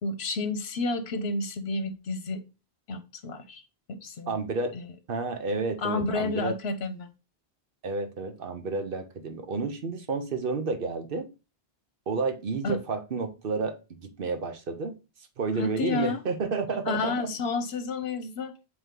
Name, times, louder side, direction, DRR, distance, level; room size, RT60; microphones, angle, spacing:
voice 1, 0.0-2.4 2.9-3.6 3.9-4.4 4.7-4.8 5.8-7.1 12.6-12.8 15.6-16.2 16.9-18.5, left 3 dB, 75° left, 1.1 m, -30 dB
voice 2, 4.3-4.7 5.1-6.5 7.8-11.3 12.1-14.9 15.4-17.1, right 4 dB, 60° right, 1.0 m, -30 dB
8.0 x 3.2 x 3.7 m
omnidirectional pair, 1.1 m